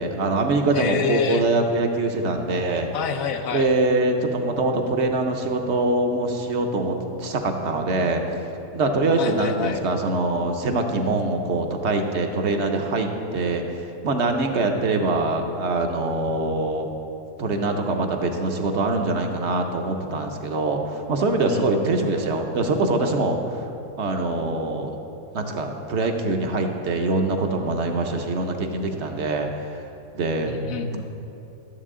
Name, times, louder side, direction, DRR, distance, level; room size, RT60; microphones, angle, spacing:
voice 1, 0.0-2.9 3.5-8.2 8.7-13.6 14.0-16.9 17.4-23.4 24.0-25.0 25.3-29.5 30.2-30.5, right 2 dB, 60° right, 4 dB, 1.0 m, -23 dB
voice 2, 0.7-1.4 2.9-3.7 9.2-9.8 21.5-21.7 30.5-31.0, left 6 dB, 90° left, 6 dB, 1.1 m, -27 dB
13.0 x 7.3 x 3.7 m, 2.8 s
omnidirectional pair, 1.4 m